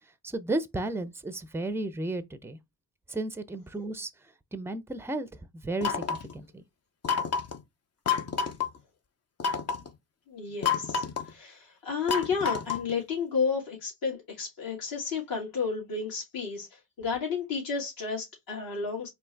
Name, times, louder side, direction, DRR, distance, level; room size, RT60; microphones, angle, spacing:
voice 1, 0.2-2.6 3.1-4.1 4.5-5.3 5.6-6.0 6.3-6.6, right 2 dB, 5° right, 0.6 m, -33 dB
sound 1, 5.8-6.3 7.0-7.6 8.1-8.7 9.4-9.9 10.6-11.3 12.1-12.9, left 6 dB, 35° left, 0.8 m, -29 dB
voice 2, 10.3-19.1, left 5 dB, 50° left, 2.1 m, -32 dB
4.4 x 2.8 x 3.4 m
hypercardioid pair, 50°, 45 cm